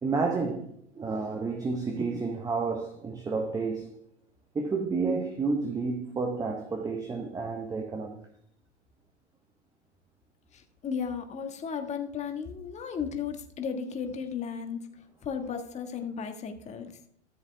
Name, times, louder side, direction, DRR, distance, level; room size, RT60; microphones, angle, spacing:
voice 1, 0.0-4.0 4.5-8.3, right 4 dB, 10° right, 0.9 m, -30 dB
voice 2, 10.5-14.8 15.2-16.9, left 6 dB, 20° left, 1.5 m, -35 dB
14.0 x 7.2 x 3.4 m
hypercardioid pair, 120°, 35 cm